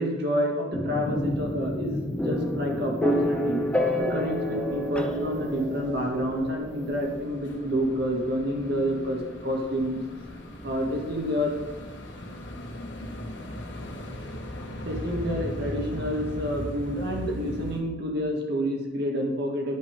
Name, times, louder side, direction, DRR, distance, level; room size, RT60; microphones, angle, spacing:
voice 1, 0.0-3.6 4.0-10.0 10.6-11.6 14.9-19.8, equal, 60° right, 0 dB, 1.8 m, -28 dB
sound 1, 0.7-14.5, left 1 dB, 5° left, 0.8 m, -31 dB
sound 2, 1.0-17.8, left 1 dB, 70° left, 1.5 m, -40 dB
10.5 x 5.4 x 5.2 m, 1.2 s
head